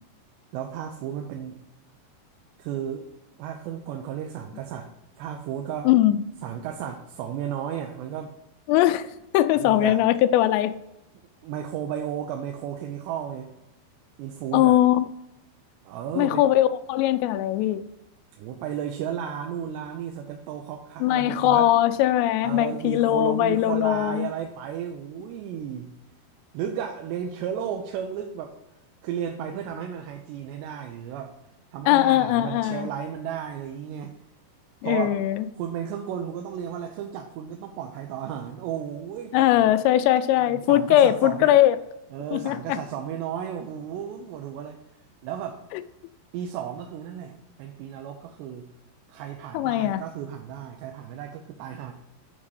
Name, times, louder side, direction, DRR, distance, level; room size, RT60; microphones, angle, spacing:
voice 1, 0.5-1.6 2.6-3.1 3.4-4.9 5.2-5.9 6.4-8.3 9.5-10.1 11.4-13.5 14.2-14.8 15.8-16.5 18.4-21.7 22.4-25.9 26.5-28.6 29.0-31.3 31.7-34.2 34.8-35.2 35.6-39.7 40.4-41.6 42.1-44.8 45.2-45.6 46.3-48.7 49.1-51.9, right 9 dB, 85° right, 3 dB, 2.8 m, -34 dB
voice 2, 5.9-6.2 8.7-9.1 9.3-10.7 14.5-15.1 16.2-17.8 21.0-24.3 31.9-32.9 34.8-35.5 39.3-41.8 42.3-42.8 45.7-45.8 49.5-50.0, left 13 dB, 85° left, 12 dB, 2.8 m, -20 dB
8.2 x 3.7 x 6.3 m, 0.89 s
omnidirectional pair, 5.0 m